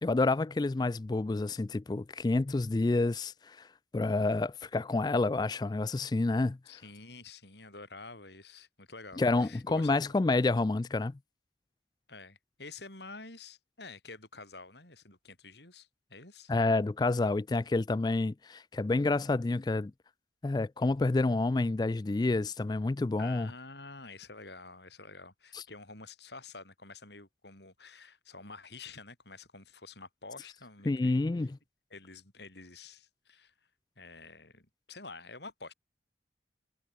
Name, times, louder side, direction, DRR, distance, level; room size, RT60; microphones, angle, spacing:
voice 1, 0.0-3.7 3.9-6.6 9.2-11.2 16.5-19.9 20.4-23.5 25.5-25.6 30.9-31.6, left 2 dB, 20° left, 0.3 m, -29 dB
voice 2, 6.7-10.0 12.1-16.5 23.2-31.5 31.9-33.5 34.0-35.7, left 3 dB, 65° left, 7.0 m, -49 dB
head